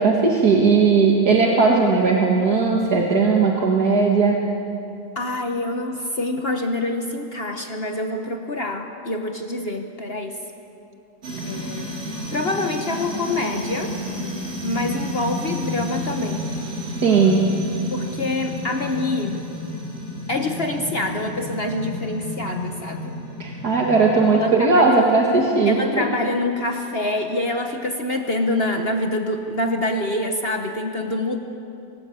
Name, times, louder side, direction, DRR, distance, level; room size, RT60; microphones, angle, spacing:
voice 1, 0.0-4.4 17.0-17.4 23.4-25.8, right 4 dB, 75° right, -1 dB, 2.4 m, -17 dB
voice 2, 5.1-10.4 11.4-11.9 12.3-13.9 14.6-16.5 17.9-19.4 20.3-23.1 24.3-25.0 25.7-31.4, left 2 dB, 40° left, 4 dB, 1.4 m, -26 dB
sound 1, 11.2-24.5, left 1 dB, 45° right, 3.4 m, -31 dB
24.5 x 18.5 x 8.4 m, 2.7 s
omnidirectional pair, 1.7 m